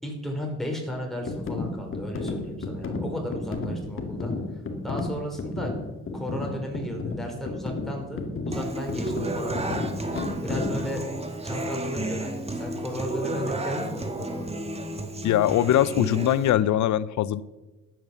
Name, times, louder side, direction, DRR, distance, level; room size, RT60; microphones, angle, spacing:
voice 1, 0.0-4.4 4.8-5.7 6.1-11.0 11.4-14.5, equal, ahead, 0 dB, 4.8 m, -34 dB
sound 1, 1.3-10.9, left 3 dB, 45° left, 2.2 m, -32 dB
Human voice / Acoustic guitar, 8.5-16.5, right 2 dB, 20° right, 1.9 m, -32 dB
voice 2, 15.2-17.4, left 12 dB, 70° left, 18 dB, 0.7 m, -22 dB
12.5 x 9.4 x 7.2 m, 1.1 s
cardioid pair, 90°, 30 cm